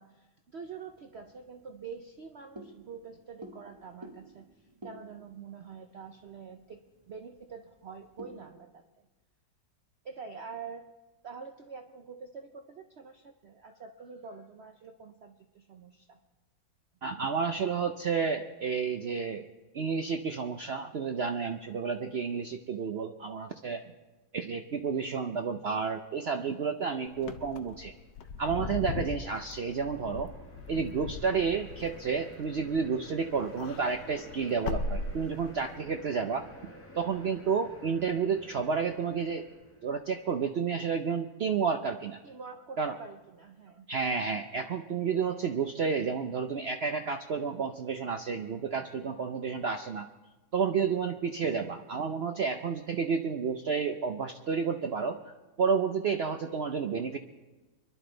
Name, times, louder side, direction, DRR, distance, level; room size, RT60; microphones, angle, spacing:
voice 1, 0.0-6.8 7.1-9.1 10.0-10.9 11.2-16.2 42.2-43.9, right 5 dB, 55° right, 5 dB, 0.7 m, -46 dB
sound 1, 0.6-8.5, right 1 dB, 20° right, 0.9 m, -53 dB
voice 2, 17.0-19.4 19.7-23.8 24.3-27.9 28.4-30.3 30.7-36.5 37.0-39.5 39.8-42.2 42.8-43.0 43.9-50.1 50.5-57.2, right 5 dB, 85° right, 6 dB, 0.5 m, -31 dB
Wind / Car, 27.2-33.0 33.3-35.8, left 4 dB, 75° left, 1.5 m, -39 dB
sound 2, 29.0-40.3, equal, 10° left, 1.4 m, -51 dB
24.5 x 11.0 x 3.9 m, 1.2 s
omnidirectional pair, 1.9 m